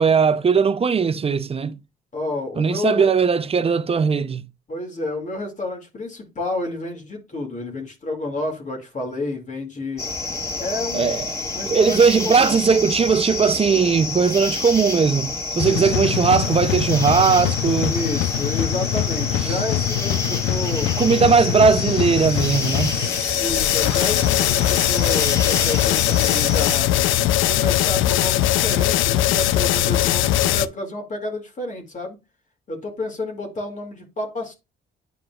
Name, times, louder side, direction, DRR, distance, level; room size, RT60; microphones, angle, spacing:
voice 1, 0.0-1.8 2.6-4.5 10.9-11.2 11.7-18.0 19.4-19.6 21.0-23.0, right 5 dB, 30° right, 0.6 m, -19 dB
voice 2, 2.1-3.1 4.7-10.0 10.6-12.6 15.6-16.1 17.9-20.9 23.4-26.9 27.4-32.2 32.7-34.5, left 2 dB, 40° left, 2.4 m, -30 dB
sound 1, 10.0-26.8, left 3 dB, 15° left, 2.6 m, -28 dB
sound 2, 15.6-30.7, left 13 dB, 85° left, 0.4 m, -21 dB
9.3 x 4.7 x 2.4 m
cardioid pair, 90°, 20 cm